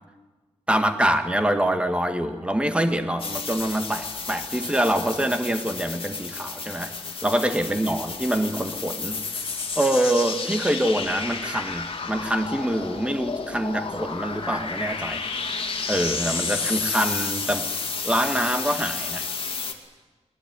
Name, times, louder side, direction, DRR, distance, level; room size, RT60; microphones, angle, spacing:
voice 1, 0.7-6.9 7.2-9.5 9.7-15.2 15.9-17.7 18.0-19.3, right 1 dB, 10° right, 7 dB, 1.6 m, -25 dB
sound 1, 3.2-19.7, left 4 dB, 50° left, 2.3 m, -31 dB
21.5 x 21.0 x 9.5 m, 1.3 s
wide cardioid pair, 170°, 12 cm